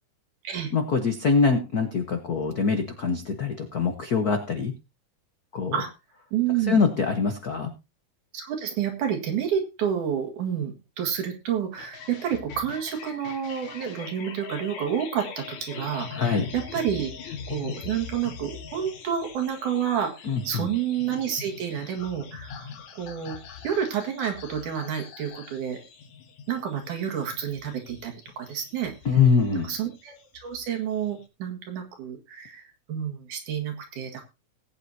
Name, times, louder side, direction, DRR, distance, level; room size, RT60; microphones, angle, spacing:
voice 1, 0.7-4.7 5.5-5.7 6.7-7.7 16.1-16.5 20.3-20.7 29.0-29.7, left 5 dB, 90° left, 6 dB, 0.8 m, -23 dB
voice 2, 6.3-6.8 8.3-20.1 20.4-23.4 23.6-25.8 26.5-28.9 29.6-32.6 32.9-34.3, right 8 dB, 80° right, 3 dB, 3.4 m, -29 dB
sound 1, 11.8-31.2, left 6 dB, 70° left, 2.6 m, -42 dB
19.5 x 9.0 x 2.7 m, 0.26 s
omnidirectional pair, 3.5 m